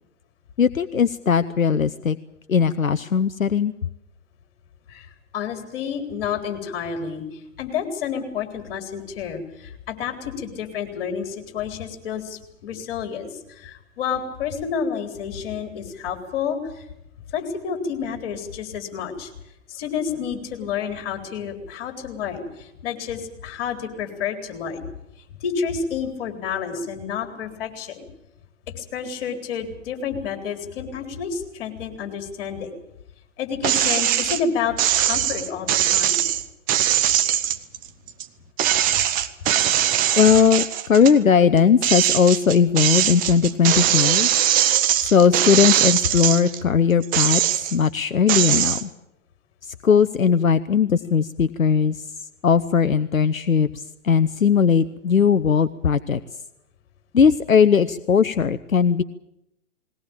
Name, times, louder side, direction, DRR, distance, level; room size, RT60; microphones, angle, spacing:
voice 1, 0.6-2.2 2.5-3.7 40.2-44.3 45.0-48.9 49.6-52.0 52.4-56.2 57.1-59.0, left 6 dB, 85° left, 12 dB, 0.8 m, -19 dB
voice 2, 5.3-16.9 17.3-19.3 19.7-24.9 25.4-28.0 28.8-32.7 33.4-36.3 38.9-39.0, left 6 dB, 45° left, 6 dB, 4.0 m, -30 dB
sound 1, 33.6-34.4 34.8-38.3 38.6-41.2 41.6-46.6 47.0-47.9 48.3-48.8, right 11 dB, 20° right, 1.0 m, -21 dB
20.0 x 18.5 x 9.0 m, 0.84 s
figure-of-eight pair, 115°, 40 cm